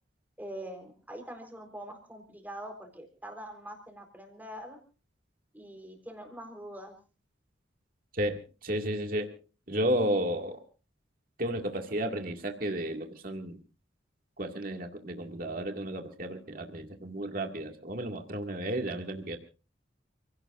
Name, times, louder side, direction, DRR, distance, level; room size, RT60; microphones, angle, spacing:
voice 1, 0.4-4.8 5.5-7.0, right 1 dB, 10° right, 4 dB, 4.1 m, -44 dB
voice 2, 8.1-9.4 9.7-10.6 11.4-13.6 14.4-19.4, right 1 dB, 50° right, 4 dB, 2.1 m, -32 dB
29.0 x 17.5 x 2.6 m, 0.35 s
head